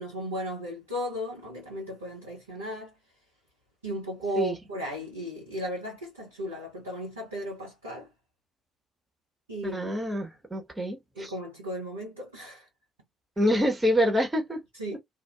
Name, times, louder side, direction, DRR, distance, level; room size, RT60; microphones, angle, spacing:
voice 1, 0.0-2.9 3.8-8.1 9.5-9.9 11.2-12.7 14.8-15.0, equal, 80° right, 0.7 m, -35 dB
voice 2, 9.6-11.3 13.4-14.6, equal, 20° right, 1.2 m, -26 dB
2.6 x 2.3 x 2.2 m
figure-of-eight pair, 45°, 0 cm